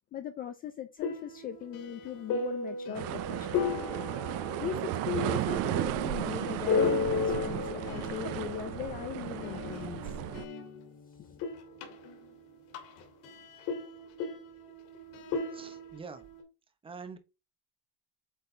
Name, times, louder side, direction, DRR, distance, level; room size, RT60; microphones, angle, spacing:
voice 1, 0.1-3.7 4.6-10.2 11.2-11.4, left 10 dB, 25° left, 0.4 m, -39 dB
sound 1, 1.0-11.0 11.3-16.4, left 5 dB, 50° left, 2.4 m, -35 dB
sound 2, 2.9-10.5, right 15 dB, 40° right, 0.5 m, -34 dB
voice 2, 15.5-16.2 16.8-17.2, right 5 dB, 15° right, 0.7 m, -44 dB
8.1 x 4.2 x 3.2 m
cardioid pair, 160°, 38 cm